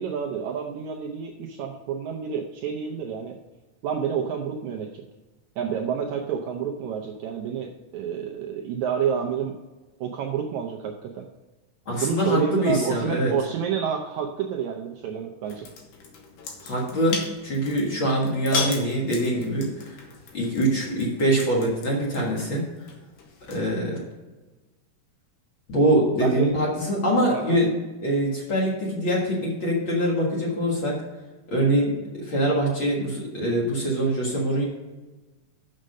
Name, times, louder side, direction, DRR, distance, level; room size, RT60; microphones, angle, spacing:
voice 1, 0.0-3.4 3.8-5.0 5.6-9.6 10.0-11.2 12.0-15.7 26.2-26.5 27.3-27.6, right 7 dB, 75° right, 1 dB, 1.7 m, -29 dB
voice 2, 11.9-13.3 16.6-20.0 20.3-22.6 23.5-24.0 25.7-27.7 28.0-31.0 31.5-34.6, right 1 dB, 45° left, -3 dB, 2.0 m, -24 dB
sound 1, 15.5-23.8, left 4 dB, 80° left, 3.0 m, -36 dB
6.6 x 6.5 x 6.3 m, 1.2 s
omnidirectional pair, 3.9 m